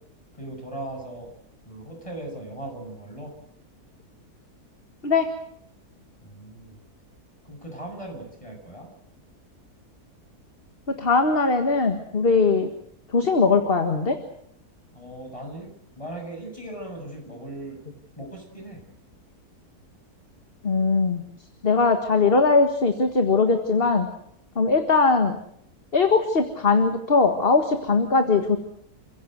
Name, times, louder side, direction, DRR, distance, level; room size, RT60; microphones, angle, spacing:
voice 1, 0.3-1.3 1.7-3.3 6.2-6.8 7.4-8.9 14.9-15.7 16.0-17.8 18.2-18.8, right 1 dB, 20° left, 2 dB, 7.3 m, -38 dB
voice 2, 10.9-12.7 13.1-14.2 20.6-21.2 21.6-24.1 24.6-25.4 25.9-28.6, left 4 dB, 35° left, 6 dB, 1.9 m, -20 dB
29.0 x 16.5 x 7.9 m, 0.72 s
omnidirectional pair, 1.6 m